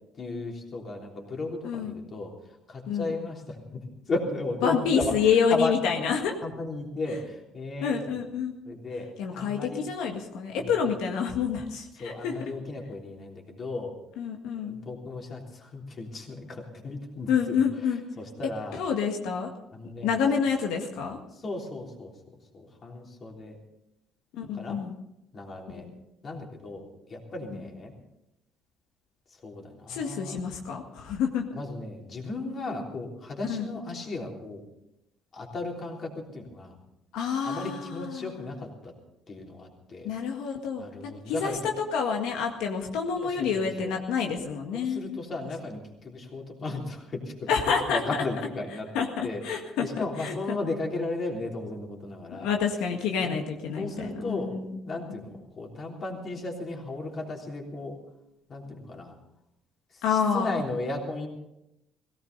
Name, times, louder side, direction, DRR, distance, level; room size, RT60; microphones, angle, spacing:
voice 1, 0.2-5.1 5.5-6.0 6.4-8.2 8.7-9.8 10.6-10.7 12.0-13.9 14.6-17.6 17.9-18.8 19.7-20.2 21.3-23.6 24.5-24.8 25.3-25.9 26.2-27.9 29.3-30.4 31.5-34.6 35.3-36.8 37.4-38.9 39.3-40.1 40.8-41.6 43.2-43.9 44.7-48.9 49.2-52.5 53.2-53.4 53.8-54.5 54.9-58.0 58.5-59.1 59.9-61.3, left 2 dB, 35° left, 0 dB, 3.5 m, -35 dB
voice 2, 1.6-1.9 2.9-3.1 4.6-6.3 7.8-8.5 9.2-12.4 14.2-14.8 17.3-18.0 18.7-19.5 20.0-21.2 24.3-25.0 25.7-25.9 29.9-31.4 33.5-33.7 37.1-38.4 40.0-45.2 47.5-48.2 48.9-49.9 50.2-50.3 52.3-54.8 55.1-55.2 60.0-60.6, left 6 dB, 90° left, 2 dB, 1.8 m, -28 dB
18.5 x 17.0 x 4.0 m, 0.87 s
cardioid pair, 135°, 0 cm